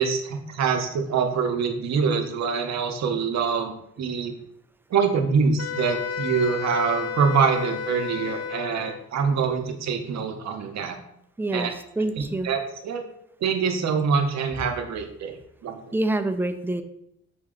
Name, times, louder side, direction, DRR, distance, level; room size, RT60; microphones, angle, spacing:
voice 1, 0.0-4.4 4.9-11.0 11.5-11.7 12.4-13.0 13.4-15.4 15.6-15.9, right 5 dB, 65° right, 5 dB, 0.7 m, -25 dB
Wind instrument woodwind instrument, 5.6-9.0, left 6 dB, 55° left, 0.5 m, -32 dB
voice 2, 11.4-12.5 15.9-16.8, right 2 dB, 5° right, 8 dB, 0.3 m, -26 dB
4.3 x 2.8 x 3.7 m, 0.74 s
cardioid pair, 80°, 30 cm